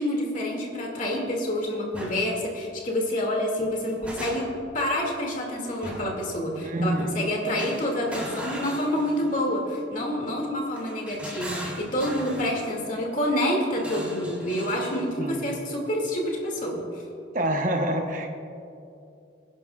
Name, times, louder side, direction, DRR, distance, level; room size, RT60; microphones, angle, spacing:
voice 1, 0.0-4.5 4.7-16.8, left 1 dB, 40° left, 0 dB, 2.3 m, -28 dB
sound 1, 1.9-2.2 3.6-4.7 5.8-6.2 7.6-9.4 10.7-12.5 13.7-15.1, equal, 5° right, 2.8 m, -38 dB
voice 2, 6.6-7.3 15.2-15.5 17.3-18.3, right 1 dB, 45° right, 3 dB, 0.9 m, -27 dB
23.0 x 11.0 x 2.4 m, 2.7 s
head